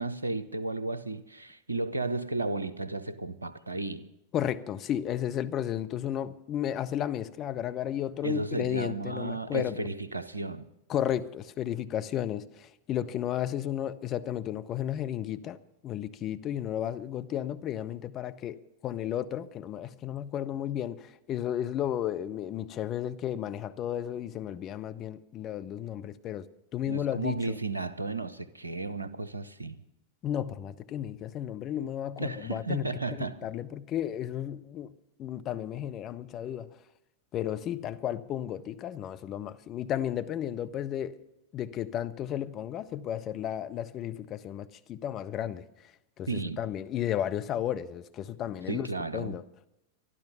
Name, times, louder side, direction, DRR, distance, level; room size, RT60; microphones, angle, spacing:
voice 1, 0.0-4.1 8.2-10.7 26.9-29.8 32.2-33.5 46.3-46.6 48.7-49.4, right 3 dB, 80° right, 0.7 m, -34 dB
voice 2, 4.3-9.7 10.9-15.6 15.8-18.6 18.8-26.5 26.7-27.6 30.2-32.8 33.2-34.9 35.2-36.7 37.3-41.2 41.5-45.6 46.2-48.9 49.1-49.4, left 10 dB, 30° left, 0.7 m, -33 dB
12.5 x 12.0 x 6.9 m
figure-of-eight pair, 90°, 0 cm